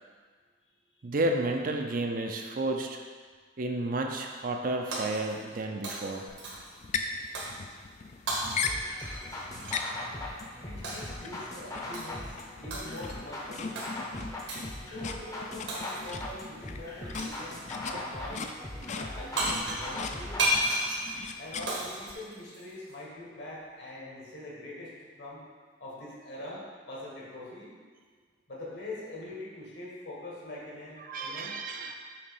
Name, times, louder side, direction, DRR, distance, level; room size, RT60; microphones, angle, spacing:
voice 1, 1.0-3.0 3.6-6.3 17.9-18.0 31.0-31.9, right 2 dB, 45° right, 3 dB, 0.5 m, -31 dB
Shatter, 4.9-5.6 5.8-6.8 7.4-7.6 8.3-9.9 10.8-11.2 11.9-12.3 12.7-13.2 13.8-13.9 14.5-14.8 15.7-16.2 17.1-17.5 19.1-19.2 19.4-22.9, right 1 dB, 80° right, 1.5 m, -33 dB
sound 1, 6.3-22.1, left 5 dB, 40° left, 0.3 m, -39 dB
sound 2, 8.6-20.6, left 1 dB, 20° left, 0.7 m, -40 dB
voice 2, 10.6-13.8 14.8-18.5 18.7-20.5 21.4-25.4 25.8-27.7 28.5-31.6, left 1 dB, 65° left, -5 dB, 1.8 m, -43 dB
6.9 x 2.9 x 5.4 m, 1.5 s
head